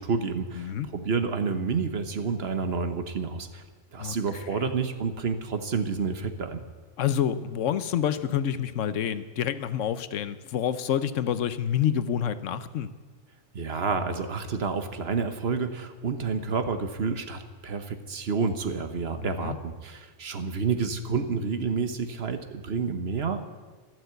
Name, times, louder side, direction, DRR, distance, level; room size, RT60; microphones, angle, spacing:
voice 1, 0.0-3.6 3.9-6.6 13.5-23.5, right 5 dB, 55° right, 9 dB, 1.3 m, -29 dB
voice 2, 0.6-0.9 4.0-4.7 7.0-12.9 19.2-19.6, left 9 dB, 85° left, 14 dB, 1.1 m, -28 dB
12.5 x 12.0 x 8.0 m, 1.4 s
omnidirectional pair, 1.3 m